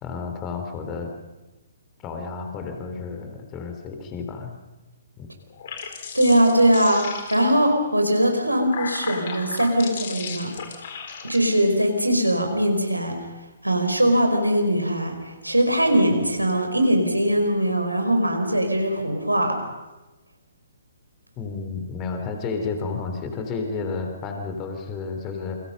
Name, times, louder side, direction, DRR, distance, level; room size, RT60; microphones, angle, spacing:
voice 1, 0.0-1.1 2.0-4.6 5.2-5.3 21.4-25.6, left 4 dB, 20° left, 4 dB, 3.6 m, -31 dB
sound 1, 5.5-7.7 8.4-11.4, left 6 dB, 45° left, 4.0 m, -35 dB
voice 2, 6.1-10.5 11.2-13.2 13.6-19.6, right 1 dB, 85° right, 4 dB, 5.0 m, -21 dB
29.0 x 23.5 x 5.5 m, 1.1 s
figure-of-eight pair, 125°, 0 cm